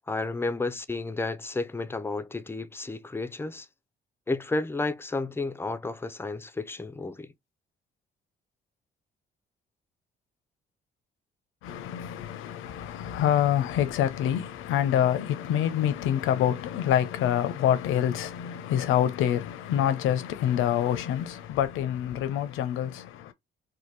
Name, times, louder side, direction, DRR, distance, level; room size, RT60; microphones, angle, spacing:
voice 1, 0.1-3.7 4.3-7.3, left 3 dB, 10° left, 0.4 m, -32 dB
voice 2, 11.6-23.3, left 10 dB, 85° left, 0.6 m, -26 dB
2.7 x 2.2 x 3.1 m
cardioid pair, 90°, 20 cm